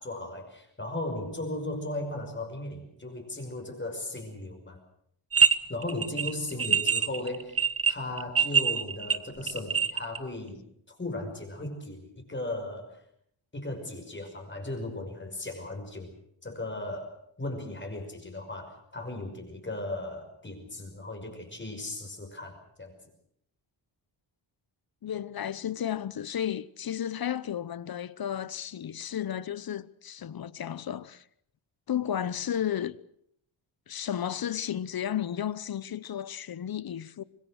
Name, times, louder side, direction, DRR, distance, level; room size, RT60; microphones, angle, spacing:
voice 1, 0.0-4.8 5.7-10.6 10.9-13.0 13.5-16.1 16.4-17.1 17.4-23.0, left 2 dB, 25° left, 5.6 m, -37 dB
sound 1, 5.3-5.6 5.8-10.2, right 6 dB, 30° right, 0.9 m, -24 dB
voice 2, 25.0-31.2 31.9-33.0 33.9-37.2, left 10 dB, 50° left, 0.9 m, -33 dB
25.0 x 21.0 x 6.5 m
wide cardioid pair, 125°, 48 cm